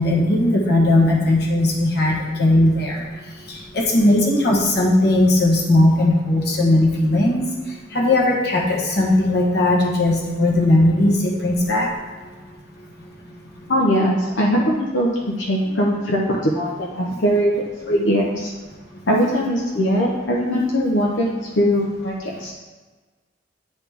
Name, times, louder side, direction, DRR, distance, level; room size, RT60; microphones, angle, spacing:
voice 1, 0.0-3.1 3.5-7.4 7.9-11.9, left 1 dB, 60° left, -2 dB, 1.4 m, -18 dB
voice 2, 13.7-15.1 15.4-18.5 19.1-22.5, equal, 85° left, -2 dB, 0.8 m, -20 dB
9.8 x 4.0 x 3.5 m, 1.3 s
head